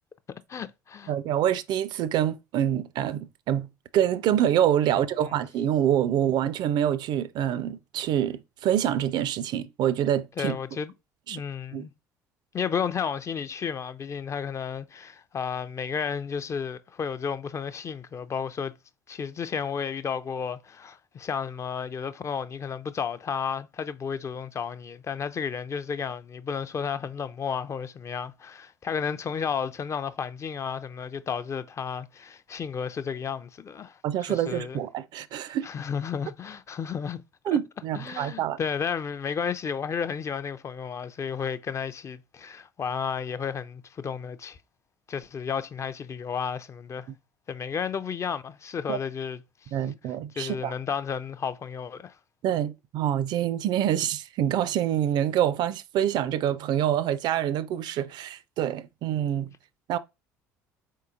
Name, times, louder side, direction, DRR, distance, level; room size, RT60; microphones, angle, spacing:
voice 1, 0.5-1.1 4.9-5.0 5.3-5.4 6.2-6.3 10.4-10.9 11.3-11.9 12.5-18.7 19.1-34.0 34.3-34.8 35.6-37.2 37.5-37.6 37.9-44.6 45.1-47.1 47.5-49.7 50.4-52.1, left 6 dB, 30° left, 0.4 m, -32 dB
voice 2, 1.1-10.6 11.3-11.4 11.7-11.9 34.0-35.7 37.5-38.6 48.9-49.0 49.7-50.7 52.4-59.5 59.9-60.0, right 10 dB, 50° right, 0.4 m, -26 dB
4.1 x 3.7 x 2.5 m
figure-of-eight pair, 60°, 9 cm